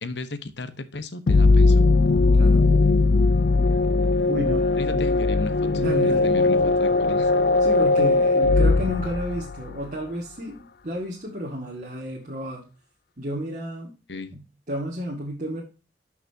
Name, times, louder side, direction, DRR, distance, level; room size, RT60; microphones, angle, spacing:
voice 1, 0.0-1.8 4.7-5.5 6.0-7.3 14.1-14.3, left 3 dB, 80° left, 1.1 m, -34 dB
sound 1, 1.3-9.9, left 3 dB, 60° left, 0.5 m, -19 dB
voice 2, 4.3-4.6 4.9-5.0 5.7-6.4 6.9-7.0 7.6-12.6 13.2-13.9 14.3-14.4 14.7-15.6, equal, 45° right, 2.1 m, -31 dB
12.5 x 6.0 x 2.8 m
head